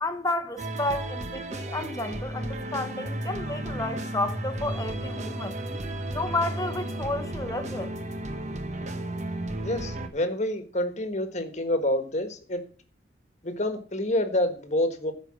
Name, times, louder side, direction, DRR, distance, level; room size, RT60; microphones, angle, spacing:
voice 1, 0.0-5.5 6.1-7.9, left 2 dB, 20° left, 1.0 m, -31 dB
sound 1, 0.6-10.1, right 1 dB, 40° right, 0.9 m, -33 dB
voice 2, 9.6-12.6 13.4-15.1, left 1 dB, 40° left, 1.5 m, -27 dB
13.0 x 5.2 x 6.1 m
head